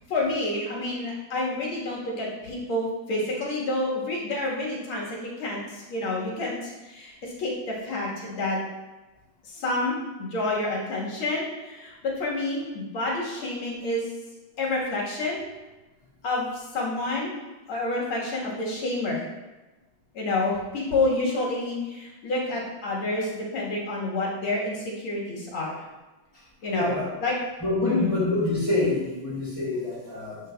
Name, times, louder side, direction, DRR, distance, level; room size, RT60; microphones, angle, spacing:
voice 1, 0.1-8.6 9.4-14.1 14.6-15.4 16.2-17.4 17.7-19.3 20.1-25.8 26.6-27.4 27.9-28.1, left 2 dB, 75° left, -4 dB, 2.4 m, -29 dB
voice 2, 26.7-27.1 27.6-30.4, left 2 dB, 15° left, -8 dB, 1.9 m, -26 dB
10.5 x 4.6 x 2.3 m, 1.1 s
omnidirectional pair, 2.3 m